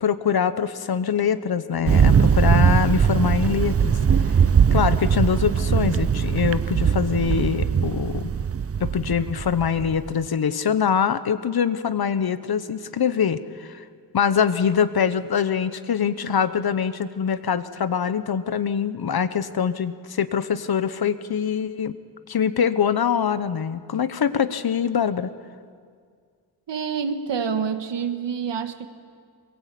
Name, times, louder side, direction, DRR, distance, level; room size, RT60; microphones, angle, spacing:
voice 1, 0.0-3.9 4.7-8.3 8.8-13.8 14.1-21.9 22.3-25.3, left 7 dB, 60° left, 13 dB, 1.0 m, -24 dB
Thunder, 1.9-10.1, right 7 dB, 35° right, 0.5 m, -20 dB
voice 2, 26.7-28.9, right 6 dB, 80° right, 9 dB, 1.5 m, -27 dB
22.0 x 22.0 x 8.4 m, 2.1 s
wide cardioid pair, 110°, 42 cm